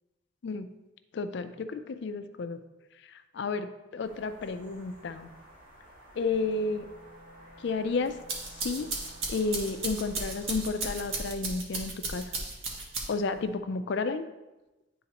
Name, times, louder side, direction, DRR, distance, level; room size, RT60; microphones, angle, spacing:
voice 1, 1.1-2.6 3.1-5.3 6.2-6.9 7.6-8.2 8.6-8.9 9.3-12.4 13.1-14.2, left 4 dB, 60° left, 10 dB, 0.4 m, -32 dB
sound 1, 4.0-11.2, equal, 45° right, 2.0 m, -54 dB
Wind instrument woodwind instrument, 6.2-9.6, right 2 dB, 60° right, 1.5 m, -55 dB
sound 2, 8.1-13.4, right 3 dB, 90° right, 1.3 m, -35 dB
10.5 x 3.9 x 2.9 m, 1.0 s
head